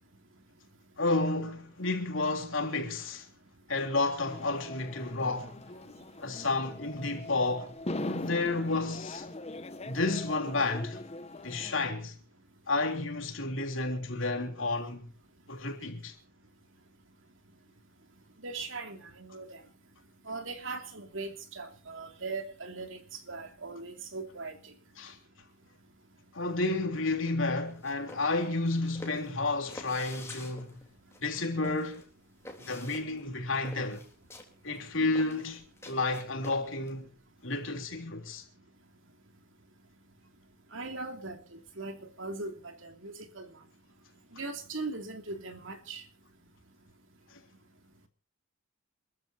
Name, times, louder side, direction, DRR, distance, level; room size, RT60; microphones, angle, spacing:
voice 1, 1.0-3.3 3.7-5.6 6.2-7.7 8.0-9.2 9.8-11.0 11.4-12.1 12.7-15.1 15.5-16.1 25.0-25.2 26.3-30.9 31.2-32.0 32.6-34.0 34.6-37.1 37.4-38.4, left 3 dB, 65° left, 3.4 m, -31 dB
sound 1, 4.2-11.8, left 2 dB, 30° left, 0.8 m, -41 dB
voice 2, 18.4-19.6 20.3-23.0 23.3-24.7 40.7-43.5 44.3-46.0, right 3 dB, 65° right, 2.8 m, -40 dB
sound 2, 27.6-36.9, left 2 dB, 15° left, 3.4 m, -48 dB
27.5 x 14.0 x 2.8 m
head